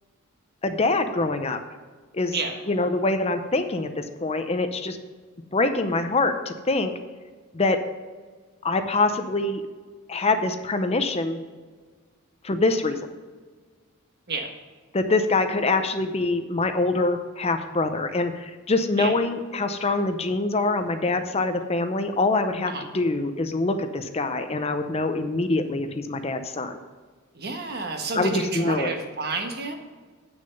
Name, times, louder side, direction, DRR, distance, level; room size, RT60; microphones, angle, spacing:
voice 1, 0.6-1.6 2.1-2.3 2.7-5.0 5.5-6.9 7.5-7.8 8.6-9.6 10.1-11.4 12.4-13.1 14.9-26.8 28.1-28.9, left 2 dB, 30° left, 8 dB, 0.6 m, -24 dB
voice 2, 27.3-29.7, right 3 dB, 50° right, 4 dB, 1.4 m, -30 dB
9.0 x 6.4 x 5.3 m, 1.5 s
head